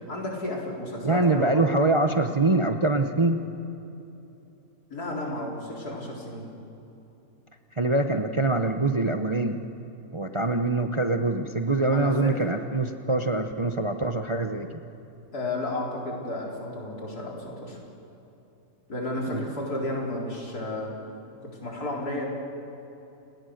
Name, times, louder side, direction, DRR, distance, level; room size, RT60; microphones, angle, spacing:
voice 1, 0.1-1.8 4.9-6.4 11.8-12.3 15.3-17.8 18.9-20.9 21.4-22.2, left 1 dB, 85° left, -2 dB, 4.7 m, -32 dB
voice 2, 1.0-3.4 7.8-9.6 10.1-14.8 19.3-19.4, right 2 dB, 30° right, 6 dB, 0.6 m, -24 dB
29.5 x 18.5 x 6.6 m, 3.0 s
omnidirectional pair, 1.6 m